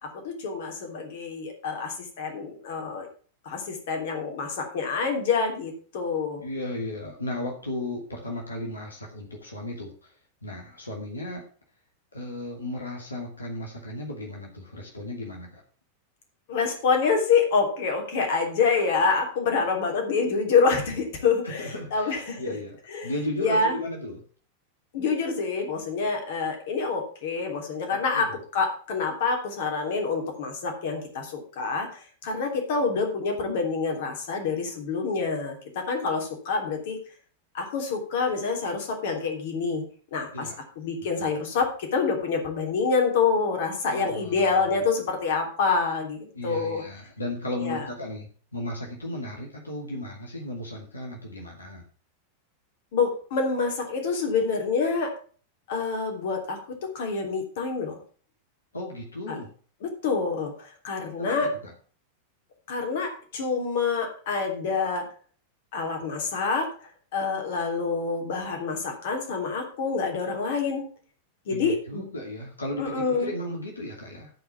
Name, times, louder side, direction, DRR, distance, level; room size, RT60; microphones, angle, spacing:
voice 1, 0.0-3.1 3.4-6.4 16.5-22.5 22.9-23.1 23.4-23.8 24.9-37.0 37.5-39.8 40.1-40.5 40.8-46.8 47.6-47.8 52.9-55.1 55.7-58.0 59.3-59.4 59.8-61.5 62.7-65.1 65.7-66.7 67.1-70.8 71.5-72.0 72.8-73.3, left 4 dB, 55° left, 3 dB, 3.2 m, -27 dB
voice 2, 6.4-10.1 10.4-11.4 12.1-15.6 21.4-24.2 28.1-28.4 40.3-40.6 41.2-41.3 43.9-44.5 46.3-51.8 58.7-59.5 61.2-61.7 71.5-74.3, left 1 dB, 80° left, -1 dB, 2.5 m, -35 dB
13.5 x 5.1 x 7.1 m, 0.43 s
figure-of-eight pair, 90°, 0 cm